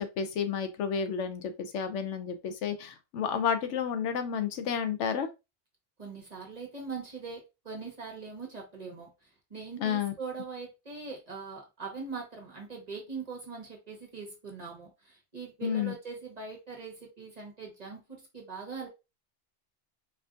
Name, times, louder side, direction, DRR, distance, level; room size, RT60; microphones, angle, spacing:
voice 1, 0.0-5.3 9.8-10.1 15.6-15.9, left 7 dB, 90° left, 1.0 m, -31 dB
voice 2, 6.0-9.1 9.5-18.9, right 4 dB, 35° right, 1.2 m, -41 dB
4.3 x 2.6 x 2.4 m
omnidirectional pair, 1.2 m